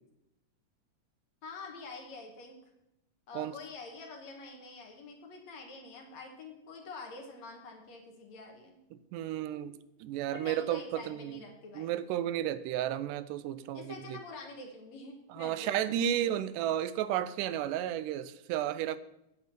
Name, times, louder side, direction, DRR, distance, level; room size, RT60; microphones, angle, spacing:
voice 1, 1.4-2.6 3.3-8.8 9.5-9.6 10.3-11.9 13.5-15.8, left 3 dB, 65° left, 2.4 m, -46 dB
voice 2, 8.9-11.4 11.8-14.2 15.3-19.0, right 11 dB, 85° right, 2.1 m, -33 dB
9.4 x 5.7 x 7.4 m
omnidirectional pair, 3.7 m